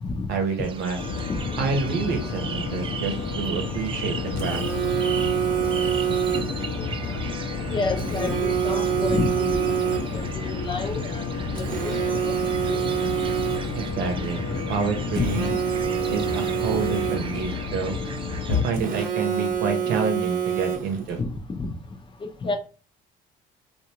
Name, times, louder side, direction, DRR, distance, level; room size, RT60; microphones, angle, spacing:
voice 1, 0.3-1.0 1.6-4.6 13.7-14.4 14.7-15.5 16.1-18.0 18.5-21.2, right 5 dB, 85° right, 4 dB, 0.9 m, -28 dB
sound 1, 0.6-18.7, right 6 dB, 30° right, 0.4 m, -38 dB
sound 2, 1.0-18.6, left 4 dB, 75° left, 0.8 m, -31 dB
Telephone, 4.4-6.7 8.0-10.3 11.6-13.9 15.1-17.5 18.7-21.1, right 9 dB, 50° right, 0.9 m, -27 dB
voice 2, 7.7-9.8 10.1-11.2 11.5-11.7 12.2-12.3 12.7-12.8 15.2-15.6 21.2-21.3 21.6-21.7 22.4-22.6, left 3 dB, 30° left, 5 dB, 0.6 m, -29 dB
3.4 x 2.5 x 2.9 m, 0.36 s
cardioid pair, 110°, 17 cm